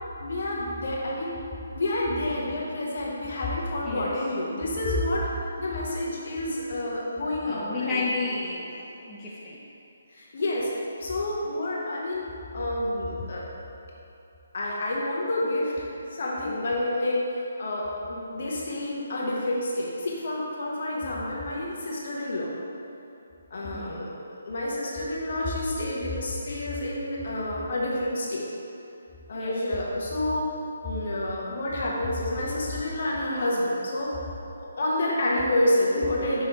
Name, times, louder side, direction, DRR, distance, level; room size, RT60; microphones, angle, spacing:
voice 1, 0.2-1.3 1.7-5.3 5.6-8.0 10.1-10.7 11.0-12.3 12.5-13.4 14.5-17.2 17.6-22.5 23.5-24.1 24.4-28.4 29.3-30.5 30.8-34.1 34.6-36.4, left 1 dB, 55° left, -4 dB, 0.9 m, -29 dB
voice 2, 3.8-4.1 7.4-8.7 9.1-9.6 23.6-24.1 29.3-29.6, left 3 dB, 10° left, -9 dB, 0.4 m, -32 dB
5.6 x 3.0 x 2.9 m, 2.8 s
hypercardioid pair, 170°, 0 cm